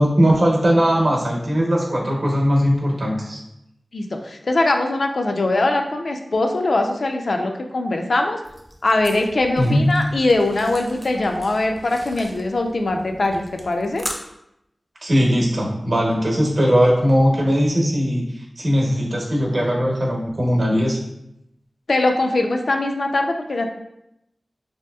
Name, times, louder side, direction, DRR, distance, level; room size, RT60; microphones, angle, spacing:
voice 1, 0.0-3.4 9.6-9.9 15.0-21.0, equal, 65° right, -2 dB, 0.8 m, -19 dB
voice 2, 3.9-8.4 8.8-14.1 21.9-23.7, left 2 dB, 70° left, 3 dB, 0.3 m, -21 dB
sound 1, 8.4-14.1, equal, 5° right, 0.4 m, -39 dB
3.2 x 2.8 x 2.2 m, 0.82 s
wide cardioid pair, 85°, 0 cm